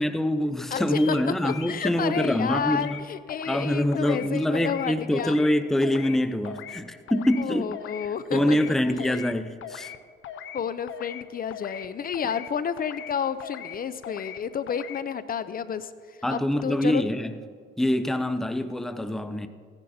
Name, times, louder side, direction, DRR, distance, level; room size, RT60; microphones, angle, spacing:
voice 1, 0.0-3.0 3.5-7.8 8.3-9.9 16.2-17.4 17.8-19.5, left 1 dB, ahead, 0.6 m, -25 dB
voice 2, 0.7-1.2 1.4-5.4 7.4-8.7 9.0-9.2 10.5-17.0, left 7 dB, 45° left, 0.6 m, -31 dB
sound 1, 0.9-1.2 1.5-2.3 2.5-3.0 3.3-3.6 3.9-4.3 4.5-4.9 5.2-5.5 5.8-6.2 6.4-6.8 7.1-7.4 7.7-8.1 8.3-8.7 9.0-9.3 9.6-10.0 10.2-10.6 10.9-11.2 11.5-11.9 12.1-12.5 12.8-13.1 13.4-13.8 14.0-14.4 14.7-15.0, left 9 dB, 75° left, 0.8 m, -39 dB
16.0 x 10.5 x 4.3 m
cardioid pair, 90°, 20 cm